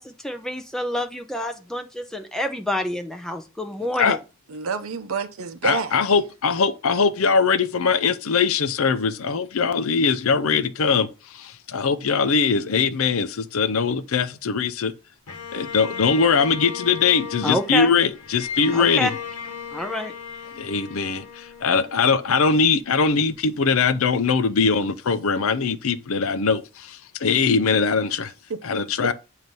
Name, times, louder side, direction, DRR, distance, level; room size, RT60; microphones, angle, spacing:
voice 1, 0.0-4.2 17.4-17.9 18.7-19.2 19.7-20.1, left 1 dB, ahead, 0.6 m, -28 dB
voice 2, 4.5-5.9 28.5-29.1, right 5 dB, 70° right, 0.7 m, -29 dB
voice 3, 5.6-11.1 11.3-14.9 15.5-19.1 20.6-28.3 28.6-29.1, left 5 dB, 70° left, 0.5 m, -21 dB
Bowed string instrument, 15.3-22.5, left 6 dB, 90° left, 1.0 m, -36 dB
7.7 x 2.8 x 5.3 m
head